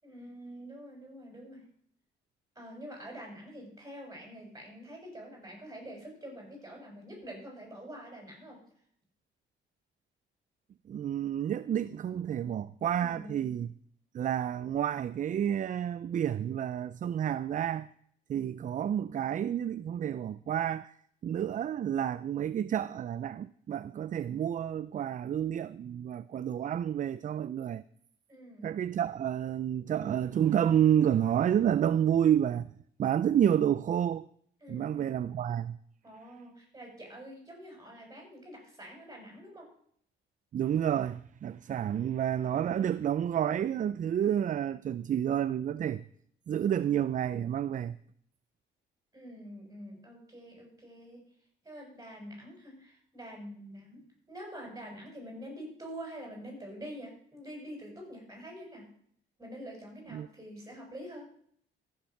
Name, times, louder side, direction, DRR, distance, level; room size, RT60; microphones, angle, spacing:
voice 1, 0.0-1.6 2.5-8.6 12.9-13.5 28.3-28.7 34.6-35.3 36.0-39.7 49.1-51.2 51.6-58.8 59.4-61.3, equal, 15° right, 6.7 m, -46 dB
voice 2, 10.9-13.7 14.1-17.9 18.3-20.9 21.2-27.8 28.6-32.7 33.0-34.3 34.7-35.8 40.5-46.0 46.5-48.0 60.1-60.3, right 9 dB, 40° right, 0.4 m, -29 dB
14.5 x 7.3 x 5.9 m
cardioid pair, 90°, 20 cm